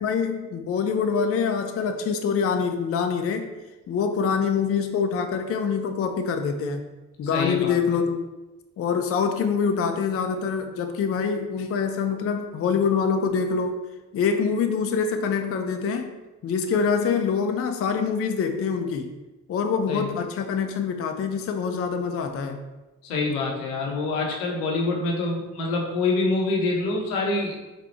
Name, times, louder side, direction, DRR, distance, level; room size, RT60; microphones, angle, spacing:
voice 1, 0.0-3.5 3.9-6.9 7.2-8.2 8.8-13.8 14.1-16.1 16.4-19.1 19.5-22.6, left 6 dB, 35° left, 6 dB, 0.5 m, -25 dB
voice 2, 7.3-7.8 19.9-20.1 23.0-27.6, left 3 dB, 80° left, 0 dB, 0.8 m, -26 dB
4.2 x 2.3 x 4.1 m, 1.1 s
hypercardioid pair, 45°, 44 cm